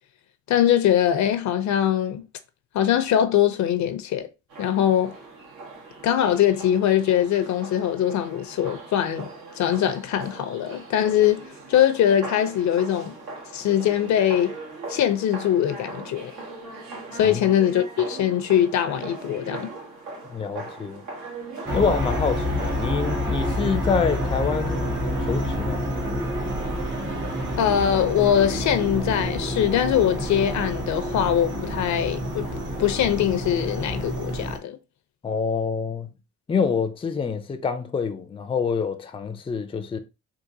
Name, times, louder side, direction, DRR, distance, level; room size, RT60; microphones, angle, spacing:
voice 1, 0.5-2.2 2.7-4.3 4.6-5.1 6.0-13.1 13.5-14.6 14.9-16.3 17.1-19.7 27.6-32.5 32.8-34.8, left 10 dB, 65° left, 0.6 m, -22 dB
sound 1, 4.5-23.0, right 3 dB, 80° right, 1.5 m, -40 dB
voice 2, 20.3-21.0 21.7-24.9 25.2-25.9 35.2-36.1 36.5-40.0, left 5 dB, 20° left, 0.4 m, -26 dB
sound 2, 21.7-34.6, equal, 40° right, 1.3 m, -28 dB
3.8 x 2.5 x 2.6 m
cardioid pair, 90°, 30 cm